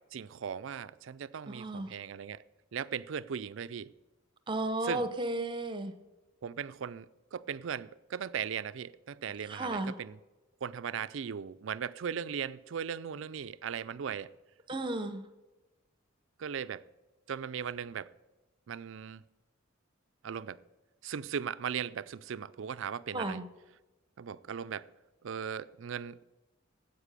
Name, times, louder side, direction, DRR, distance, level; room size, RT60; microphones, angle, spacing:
voice 1, 0.1-2.4 2.7-3.9 4.8-5.1 6.4-10.2 10.6-14.3 16.4-16.8 17.3-18.1 18.7-19.2 20.2-20.6 21.0-23.4 24.2-24.9 25.2-26.3, right 7 dB, 65° right, 0.4 m, -38 dB
voice 2, 1.5-1.9 4.5-5.9 9.5-9.9 14.7-15.2 23.1-23.5, right 2 dB, 25° right, 0.8 m, -34 dB
9.8 x 8.2 x 6.7 m
head